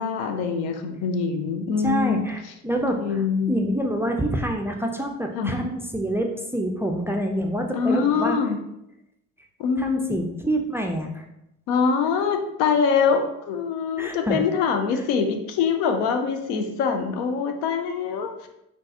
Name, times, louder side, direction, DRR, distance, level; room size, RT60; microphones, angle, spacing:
voice 1, 0.0-2.2 3.0-3.5 5.3-5.6 7.7-8.6 9.6-10.2 11.7-18.5, left 6 dB, 75° left, 6 dB, 0.5 m, -24 dB
voice 2, 1.8-3.2 3.5-8.4 9.8-11.2 14.0-14.4, right 1 dB, 5° right, 2 dB, 0.3 m, -26 dB
3.8 x 2.3 x 2.7 m, 0.83 s
hypercardioid pair, 55°, 36 cm